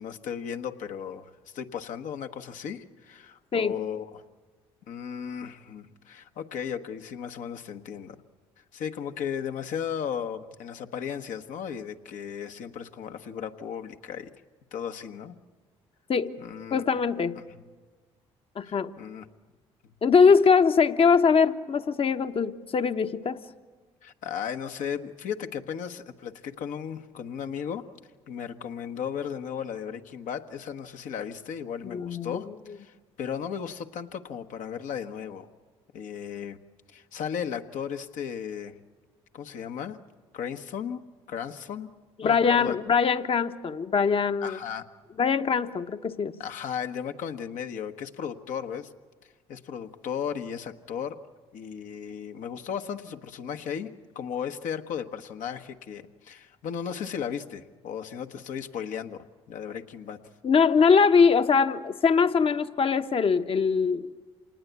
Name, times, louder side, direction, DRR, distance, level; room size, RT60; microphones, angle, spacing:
voice 1, 0.0-4.2 4.9-8.2 8.7-14.3 14.7-15.4 16.4-16.8 17.3-17.6 18.6-19.3 19.8-19.9 24.0-27.8 28.3-35.5 35.9-36.6 36.9-38.7 39.3-40.0 40.3-41.9 42.2-42.8 44.4-44.8 46.4-48.9 49.5-51.2 51.5-60.2, left 8 dB, 70° left, 6 dB, 1.3 m, -35 dB
voice 2, 16.7-17.4 18.6-18.9 20.0-23.4 31.9-32.4 42.2-44.6 45.2-46.3 60.4-64.1, left 5 dB, 45° left, 10 dB, 1.1 m, -22 dB
27.0 x 19.5 x 8.2 m, 1.4 s
hypercardioid pair, 60°, 14 cm